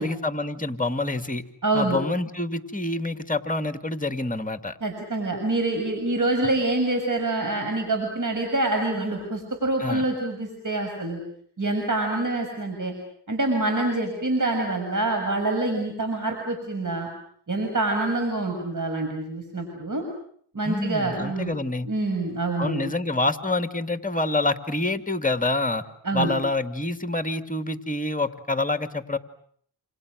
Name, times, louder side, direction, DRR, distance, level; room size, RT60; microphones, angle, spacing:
voice 1, 0.0-1.4 1.7-4.8 9.8-10.1 20.6-21.9 22.6-25.8 26.1-29.2, left 2 dB, 15° left, 9 dB, 2.4 m, -27 dB
voice 2, 1.6-2.0 4.8-11.2 11.6-12.9 13.3-17.1 17.5-20.0 20.5-21.6 21.8-22.9 26.0-26.3, right 2 dB, 40° right, 4 dB, 6.8 m, -26 dB
29.0 x 28.5 x 6.5 m, 0.62 s
cardioid pair, 60°, 48 cm